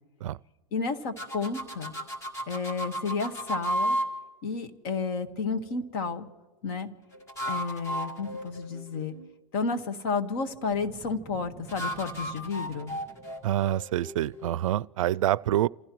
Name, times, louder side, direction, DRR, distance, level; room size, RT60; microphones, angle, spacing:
voice 1, 0.7-1.9 2.5-4.0 4.4-6.3 6.6-6.9 7.5-9.1 9.5-13.0, left 4 dB, 50° left, 1.6 m, -31 dB
sound 1, 1.2-4.1 7.1-9.3 11.7-14.6, equal, 15° left, 1.9 m, -34 dB
Boom, 10.7-13.8, right 6 dB, 15° right, 1.8 m, -50 dB
voice 2, 13.4-15.7, right 13 dB, 80° right, 0.4 m, -26 dB
29.5 x 16.0 x 3.1 m
hypercardioid pair, 145°, 17 cm